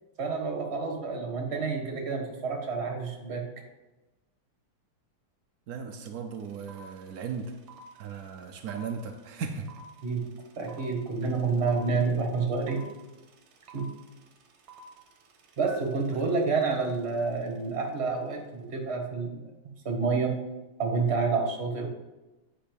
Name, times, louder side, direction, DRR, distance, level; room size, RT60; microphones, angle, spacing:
voice 1, 0.2-3.5 10.0-10.2 10.6-12.8 13.7-13.9 15.6-19.5 19.8-20.4 20.8-21.9, right 4 dB, 35° right, 2 dB, 1.4 m, -29 dB
voice 2, 5.7-7.6 8.0-9.7 11.2-11.3 16.1-16.2, right 6 dB, 80° right, 4 dB, 0.8 m, -37 dB
sound 1, 6.1-6.2 6.3-17.5, right 3 dB, 55° right, 1.4 m, -52 dB
8.7 x 5.2 x 5.2 m, 1.1 s
omnidirectional pair, 2.4 m